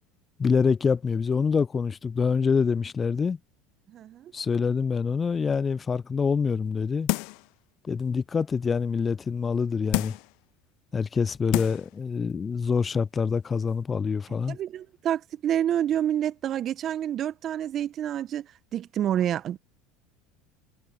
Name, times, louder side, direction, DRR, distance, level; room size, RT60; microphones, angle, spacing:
voice 1, 0.4-3.4 4.3-7.1 7.8-10.2 10.9-14.6, left 5 dB, 25° left, 0.3 m, -26 dB
voice 2, 3.9-4.3 14.5-19.6, right 10 dB, 45° right, 1.1 m, -28 dB
sound 1, 7.1-7.5 8.0-8.1 9.9-10.4 11.1-11.2 11.5-11.9 12.3-12.4, left 28 dB, 65° left, 0.7 m, -29 dB
hypercardioid pair, 80°, 0 cm